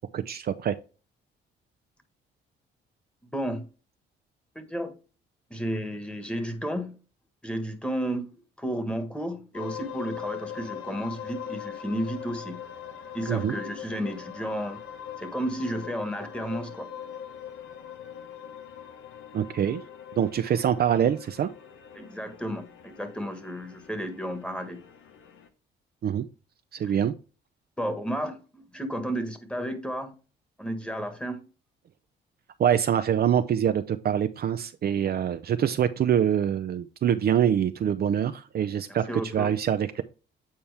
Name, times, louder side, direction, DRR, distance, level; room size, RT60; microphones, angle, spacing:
voice 1, 0.1-0.7 13.3-13.5 19.3-19.8 20.2-21.5 26.0-26.2 26.7-27.1 32.6-40.0, right 9 dB, 50° right, 0.5 m, -25 dB
voice 2, 3.2-3.7 4.5-4.9 5.5-7.0 7.4-8.3 8.6-12.6 13.1-14.8 15.2-16.9 21.9-24.8 26.8-26.9 27.8-30.2 30.6-31.4 38.9-39.5, equal, 5° left, 1.5 m, -32 dB
sound 1, 9.5-25.5, left 9 dB, 80° left, 1.1 m, -42 dB
8.8 x 4.3 x 3.4 m
cardioid pair, 90°, 20 cm